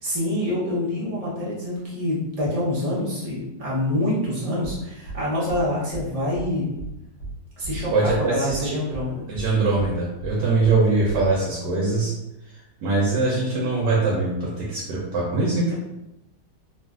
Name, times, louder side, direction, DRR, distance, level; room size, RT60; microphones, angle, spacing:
voice 1, 0.0-6.7 7.6-9.2, left 1 dB, 30° right, -7 dB, 0.7 m, -26 dB
sound 1, 4.6-4.8 5.0-5.2 5.5-5.6 5.9-6.0 6.3-6.5 6.8-6.9 7.2-7.3 7.6-8.2 8.5-8.6 8.9-9.0 9.3-9.5 9.8-9.9 10.2-10.3 10.6-10.8 11.0-11.3, right 3 dB, 70° left, 1.3 m, -34 dB
voice 2, 7.9-8.8 9.3-12.1 12.5-15.7, right 3 dB, 80° right, -6 dB, 1.3 m, -22 dB
3.1 x 2.4 x 2.4 m, 0.92 s
omnidirectional pair, 1.8 m